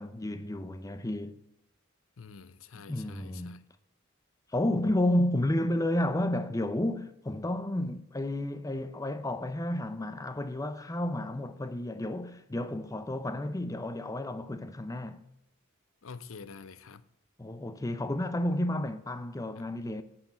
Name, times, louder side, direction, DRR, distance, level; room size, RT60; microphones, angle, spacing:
voice 1, 0.0-1.4 2.9-3.6 4.5-15.2 17.4-20.0, left 1 dB, 15° left, 0.6 m, -31 dB
voice 2, 2.2-3.6 16.0-17.0 19.6-19.7, left 5 dB, 85° left, 0.7 m, -47 dB
8.8 x 7.4 x 7.5 m
head